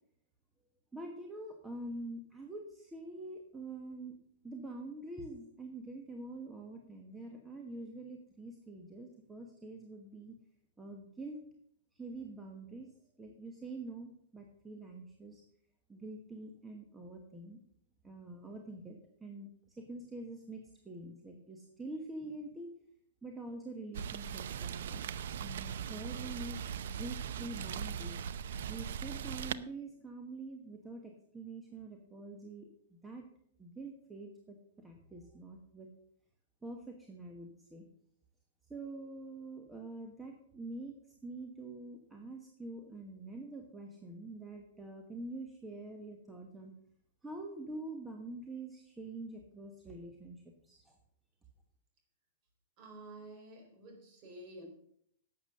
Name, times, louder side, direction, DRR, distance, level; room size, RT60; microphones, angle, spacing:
voice 1, 0.9-4.2 4.4-10.4 10.8-11.4 11.9-15.4 15.9-17.6 18.0-19.5 19.8-22.7 23.2-25.0 25.4-26.6 26.9-28.3 28.7-33.3 33.6-35.9 36.6-37.8 38.7-46.7 47.2-51.0, right 2 dB, 5° right, 2 dB, 1.2 m, -46 dB
Rain, 23.9-29.5, right 8 dB, 70° right, 0.6 m, -39 dB
voice 2, 52.8-54.7, right 1 dB, 30° right, 3 dB, 3.7 m, -50 dB
11.5 x 8.1 x 6.6 m, 0.68 s
supercardioid pair, 165°, 0 cm